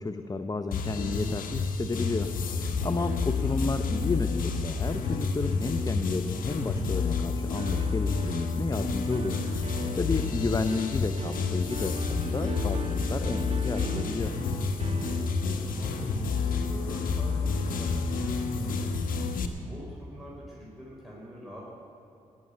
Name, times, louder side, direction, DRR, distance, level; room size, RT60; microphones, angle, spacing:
voice 1, 0.0-9.4 9.7-14.3, left 3 dB, 25° left, 9 dB, 0.7 m, -32 dB
sound 1, 0.7-19.5, left 4 dB, 65° left, 1.2 m, -29 dB
voice 2, 2.1-3.0 14.9-21.7, equal, ahead, -5 dB, 4.3 m, -46 dB
sound 2, 7.6-15.8, right 2 dB, 45° right, 1.3 m, -40 dB
18.5 x 6.9 x 7.8 m, 2.7 s
hypercardioid pair, 45°, 15 cm